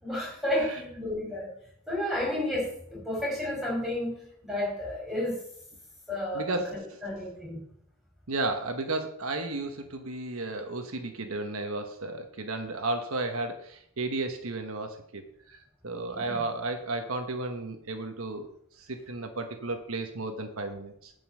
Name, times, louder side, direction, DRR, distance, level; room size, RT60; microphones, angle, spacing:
voice 1, 0.0-1.5 1.9-5.4 6.1-7.6 16.1-16.4, left 1 dB, ahead, -4 dB, 5.2 m, -32 dB
voice 2, 6.3-7.0 8.3-18.5 18.8-21.1, right 2 dB, 80° right, 6 dB, 1.2 m, -33 dB
9.2 x 5.4 x 7.7 m, 0.69 s
head